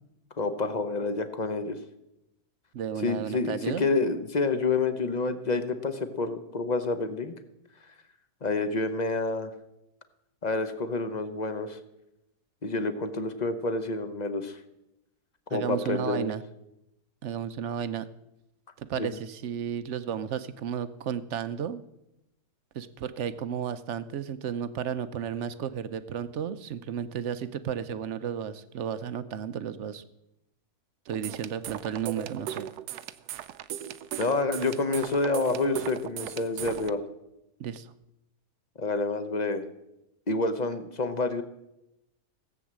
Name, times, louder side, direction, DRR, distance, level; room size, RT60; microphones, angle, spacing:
voice 1, 0.4-1.8 3.0-7.3 8.4-9.5 10.4-11.8 12.6-14.6 15.5-16.3 19.0-19.1 34.2-37.0 38.8-39.6 40.3-41.4, left 3 dB, 35° left, 10 dB, 0.8 m, -28 dB
voice 2, 2.7-3.9 15.5-16.4 17.2-18.1 18.8-21.8 22.7-30.0 31.1-32.7 37.6-37.9, right 8 dB, 60° right, 13 dB, 0.8 m, -33 dB
sound 1, 31.1-36.9, right 11 dB, 75° right, 1.2 m, -38 dB
16.5 x 7.9 x 7.4 m, 0.90 s
omnidirectional pair, 1.7 m